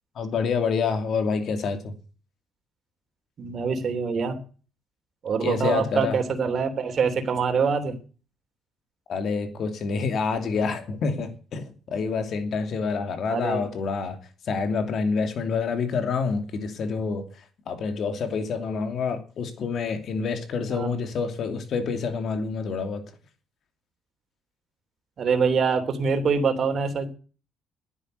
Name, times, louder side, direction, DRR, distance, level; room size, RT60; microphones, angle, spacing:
voice 1, 0.1-1.9 5.4-6.2 9.1-14.2 14.4-17.3 17.7-23.0, left 5 dB, 55° left, 2.8 m, -27 dB
voice 2, 3.4-4.4 5.2-7.9 13.3-13.7 20.7-20.9 25.2-27.1, right 5 dB, 45° right, 3.2 m, -24 dB
12.0 x 9.9 x 8.0 m
cardioid pair, 105°, 0 cm